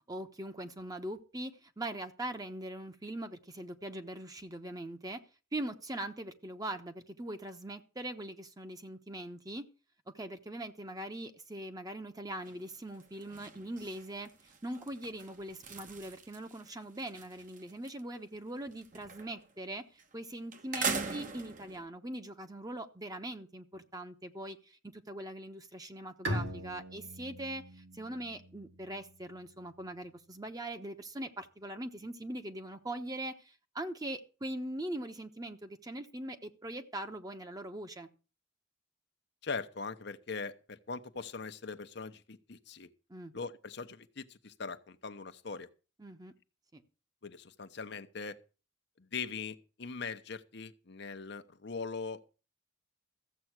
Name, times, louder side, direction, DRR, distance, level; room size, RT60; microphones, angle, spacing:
voice 1, 0.1-5.2 5.5-9.6 10.1-14.3 14.6-38.1 43.1-43.3 46.0-46.3 46.7-46.8, right 1 dB, 20° right, 1.1 m, -41 dB
sound 1, 12.4-12.7 13.0-18.0 18.3-19.5 20.0-20.1 20.5-21.8, right 5 dB, 45° right, 1.2 m, -41 dB
Bowed string instrument, 26.2-29.8, equal, 80° right, 2.9 m, -41 dB
voice 2, 39.4-42.9 43.3-45.7 47.2-48.4 49.0-52.4, left 4 dB, 60° left, 0.9 m, -41 dB
14.5 x 7.7 x 6.0 m
head